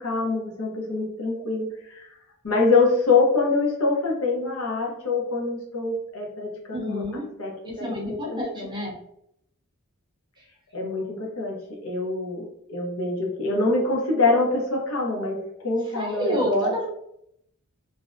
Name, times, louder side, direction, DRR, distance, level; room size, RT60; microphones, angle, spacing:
voice 1, 0.0-2.1 2.4-7.5 7.8-8.7 10.7-16.7, left 3 dB, 80° left, -1 dB, 0.7 m, -25 dB
voice 2, 6.7-7.2 7.6-8.9 10.4-10.5 15.9-16.9, equal, 20° right, -3 dB, 0.6 m, -29 dB
2.5 x 2.0 x 2.4 m, 0.75 s
head